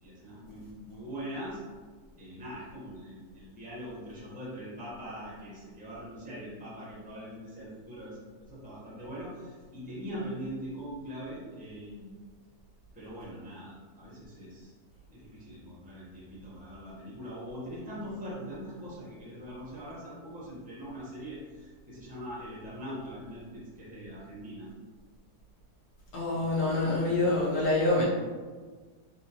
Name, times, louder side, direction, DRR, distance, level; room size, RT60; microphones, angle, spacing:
voice 1, 0.0-1.6 2.2-12.1 12.9-14.7 15.1-24.7 26.3-27.6, equal, 10° right, -7 dB, 0.5 m, -42 dB
voice 2, 26.1-28.0, left 2 dB, 70° left, -6 dB, 1.5 m, -26 dB
3.5 x 2.6 x 2.8 m, 1.4 s
omnidirectional pair, 1.8 m